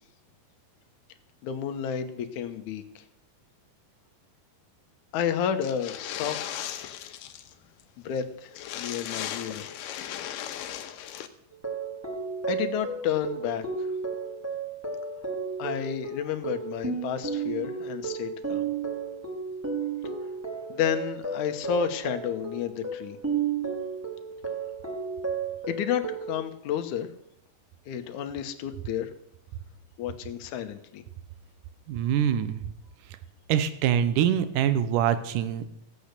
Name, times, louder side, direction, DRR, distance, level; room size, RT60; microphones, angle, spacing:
voice 1, 1.4-3.0 5.1-6.7 8.0-9.7 12.5-13.6 15.6-18.7 20.7-23.2 25.7-27.1 27.9-29.1 30.0-31.0, left 9 dB, 70° left, 8 dB, 2.4 m, -31 dB
movimiento agua, 5.6-7.5 7.8-7.9 8.1-8.2 8.5-11.3, left 11 dB, 85° left, 2.5 m, -37 dB
sound 1, 11.5-26.4, right 5 dB, 5° right, 1.6 m, -33 dB
voice 2, 31.9-32.6 33.5-35.7, right 9 dB, 80° right, 12 dB, 2.4 m, -24 dB
15.5 x 8.6 x 6.7 m, 0.77 s
omnidirectional pair, 3.8 m